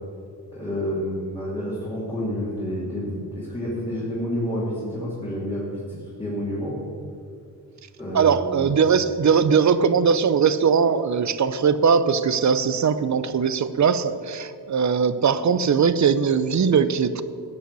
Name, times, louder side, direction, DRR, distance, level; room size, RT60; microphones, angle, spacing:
voice 1, 0.5-6.8 8.0-8.6, equal, 10° left, -8 dB, 2.7 m, -29 dB
voice 2, 8.1-17.2, right 6 dB, 45° right, 13 dB, 0.6 m, -20 dB
16.0 x 5.6 x 8.2 m, 2.3 s
wide cardioid pair, 155°, 42 cm